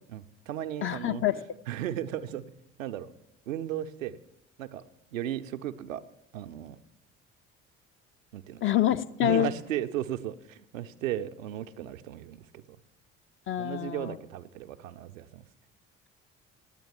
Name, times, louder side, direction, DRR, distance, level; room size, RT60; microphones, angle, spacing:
voice 1, 0.1-1.2 1.7-2.4 2.8-3.1 3.5-4.2 4.6-4.8 5.1-6.0 6.3-6.8 8.3-8.7 9.2-12.6 13.6-15.4, right 11 dB, 80° right, 9 dB, 0.6 m, -35 dB
voice 2, 0.8-1.4 8.6-9.5 13.5-14.2, left 12 dB, 35° left, 12 dB, 0.5 m, -26 dB
9.0 x 9.0 x 7.0 m, 0.84 s
figure-of-eight pair, 50°, 39 cm